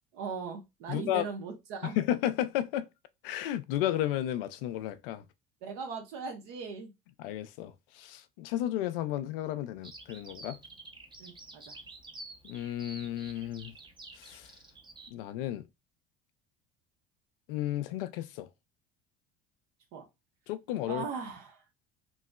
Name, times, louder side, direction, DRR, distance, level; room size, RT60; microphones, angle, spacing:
voice 1, 0.1-2.0 5.6-6.9 11.2-11.8 19.9-20.1 20.9-21.6, right 5 dB, 65° right, 1.1 m, -39 dB
voice 2, 0.9-1.3 1.8-2.9 3.2-5.2 7.2-10.6 12.4-13.7 14.1-14.6 15.1-15.7 17.5-18.5 20.5-21.0, left 12 dB, 70° left, 0.4 m, -33 dB
Bird vocalization bird call bird song, 9.8-15.1, right 2 dB, 15° right, 0.7 m, -49 dB
3.0 x 2.7 x 2.2 m
hypercardioid pair, 65°, 29 cm